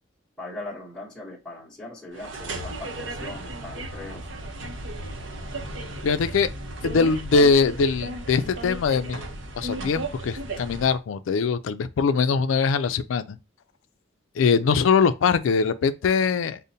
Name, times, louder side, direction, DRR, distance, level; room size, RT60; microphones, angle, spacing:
voice 1, 0.4-4.3, left 2 dB, ahead, 0.9 m, -39 dB
sound 1, 2.1-11.0, right 1 dB, 70° right, 0.6 m, -35 dB
voice 2, 6.0-6.5 6.8-9.2 9.6-13.4 14.4-16.6, left 5 dB, 80° left, 0.4 m, -22 dB
5.1 x 2.1 x 2.7 m
head